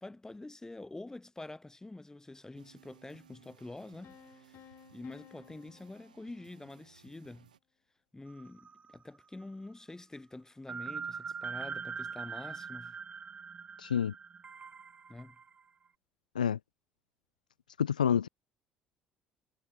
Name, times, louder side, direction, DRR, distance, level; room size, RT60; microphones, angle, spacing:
voice 1, 0.0-4.6 4.9-7.5 8.1-13.0 15.1-15.4, left 2 dB, 15° left, 2.3 m, -47 dB
sound 1, 2.5-7.6, right 9 dB, 80° right, 5.3 m, -61 dB
sound 2, 4.0-6.9, left 13 dB, 55° left, 2.2 m, -58 dB
sound 3, 8.3-9.2 9.4-9.5 10.7-15.6, right 6 dB, 30° right, 0.5 m, -42 dB
voice 2, 13.8-14.1 16.3-16.6 17.8-18.3, left 8 dB, 85° left, 0.4 m, -28 dB
figure-of-eight pair, 55°, 4 cm